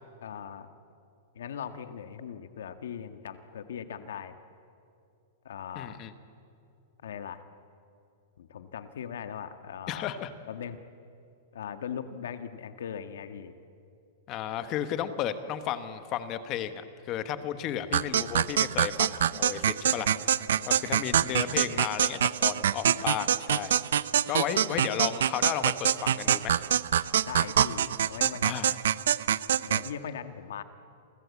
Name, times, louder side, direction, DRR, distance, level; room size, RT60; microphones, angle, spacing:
voice 1, 0.2-0.7 1.3-4.4 5.5-6.0 7.0-7.4 8.4-10.1 10.5-10.8 11.5-13.5 20.6-20.9 27.3-28.5 29.6-30.6, left 8 dB, 80° left, 9 dB, 1.7 m, -39 dB
voice 2, 5.7-6.1 9.9-10.3 14.3-23.8 24.3-26.6 28.4-28.8, left 10 dB, 25° left, 11 dB, 1.2 m, -33 dB
sound 1, 17.9-29.9, right 9 dB, 80° right, 0.7 m, -25 dB
30.0 x 24.0 x 8.4 m, 2.6 s
supercardioid pair, 175°, 0 cm